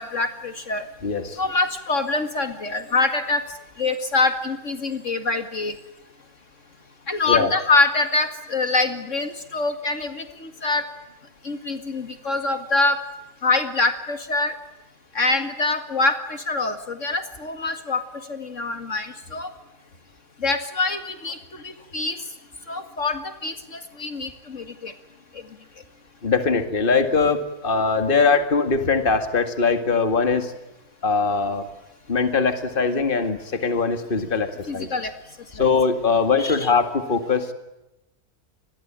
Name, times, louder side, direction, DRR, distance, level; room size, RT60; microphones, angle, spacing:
voice 1, 0.0-0.8 1.4-3.4 3.8-5.7 7.1-10.8 11.4-13.0 13.4-14.5 15.1-18.0 18.3-19.5 20.4-21.4 21.6-22.2 22.7-24.9 34.7-35.1 35.6-35.7 36.4-36.7, left 3 dB, 50° left, 8 dB, 2.4 m, -24 dB
voice 2, 1.0-1.4 7.3-7.5 26.2-30.5 31.0-31.7 32.1-34.9 35.5-37.5, left 4 dB, 35° left, 9 dB, 2.2 m, -21 dB
28.5 x 21.5 x 8.9 m, 0.95 s
omnidirectional pair, 1.6 m